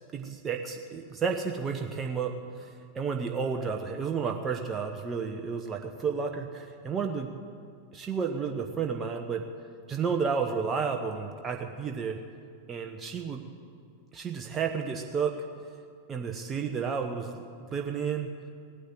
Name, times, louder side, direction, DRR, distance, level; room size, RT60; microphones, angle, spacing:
voice 1, 0.1-7.3 7.9-9.4 9.9-12.2 12.7-13.4 14.1-15.3 16.1-17.4 17.7-18.3, right 6 dB, 20° right, 3 dB, 1.1 m, -31 dB
17.5 x 10.0 x 8.0 m, 2.3 s
figure-of-eight pair, 90°, 0 cm